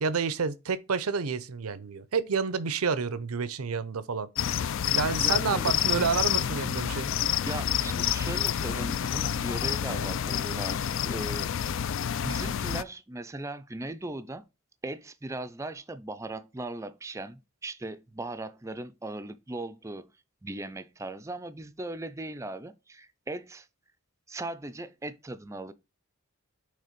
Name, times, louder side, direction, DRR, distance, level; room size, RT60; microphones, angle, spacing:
voice 1, 0.0-4.3 4.9-7.1, right 5 dB, 85° right, 0.6 m, -29 dB
sound 1, 4.3-12.8, left 9 dB, 60° left, 0.4 m, -28 dB
voice 2, 5.2-5.8 7.4-11.5 12.2-14.4 14.8-20.1 20.4-23.7 24.3-25.7, right 2 dB, 15° right, 0.4 m, -38 dB
6.6 x 3.4 x 5.1 m
head